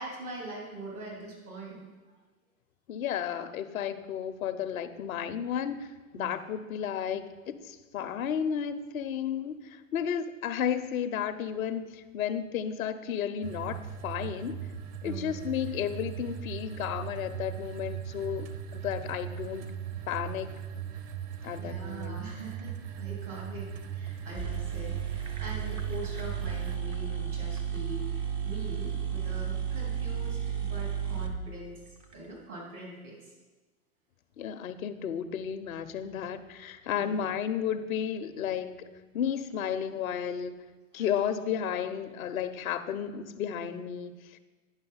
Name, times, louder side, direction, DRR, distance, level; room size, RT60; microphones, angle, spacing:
voice 1, 0.0-1.8 6.1-6.4 15.0-15.3 21.6-28.1 28.4-31.8 32.1-33.3 37.0-37.2 40.9-41.1, right 2 dB, 80° right, -2 dB, 3.3 m, -43 dB
voice 2, 2.9-14.6 15.0-19.7 20.1-20.5 21.4-22.2 34.4-38.9 39.1-40.6 40.9-44.4, left 8 dB, 70° left, 10 dB, 0.7 m, -33 dB
sound 1, 13.4-26.8, right 8 dB, 50° right, 0.8 m, -39 dB
sound 2, 24.1-24.2 24.3-32.2, right 8 dB, 15° right, 0.3 m, -33 dB
9.7 x 5.5 x 5.5 m, 1.2 s
hypercardioid pair, 105°, 43 cm